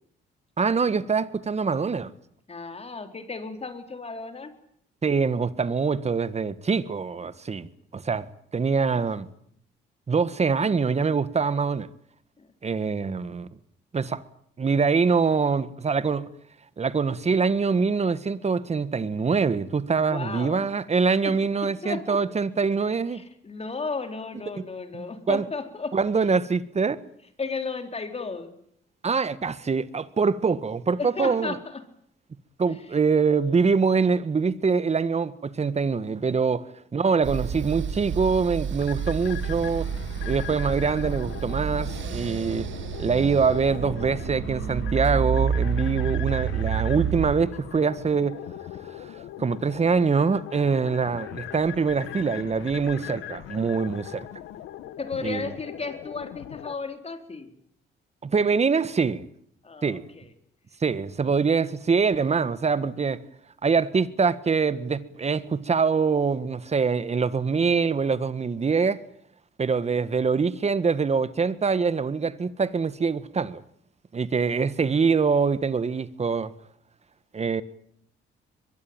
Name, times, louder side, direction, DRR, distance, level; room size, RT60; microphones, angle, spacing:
voice 1, 0.6-2.1 5.0-8.3 8.5-9.3 10.1-11.9 12.6-13.5 13.9-14.2 14.6-16.3 16.8-23.2 24.6-24.7 24.9-25.5 25.9-27.0 29.0-31.5 32.6-39.9 40.2-42.7 43.0-48.4 49.0-49.1 49.4-54.3 55.2-55.5 58.2-59.2 59.8-60.1 60.8-63.2 63.6-69.0 69.6-73.6 74.1-76.5 77.3-77.6, right 5 dB, 35° right, 1.6 m, -24 dB
voice 2, 2.5-4.5 12.4-12.5 20.1-20.7 21.2-21.4 21.6-22.2 23.1-26.0 27.4-28.5 31.0-31.8 32.6-32.8 55.0-57.5 59.6-60.3, left 4 dB, 30° left, 4.1 m, -34 dB
sound 1, 37.2-47.4, right 7 dB, 70° right, 2.3 m, -29 dB
sound 2, 38.8-56.8, left 12 dB, 90° left, 1.9 m, -40 dB
23.0 x 22.5 x 9.0 m
cardioid pair, 90°, 20 cm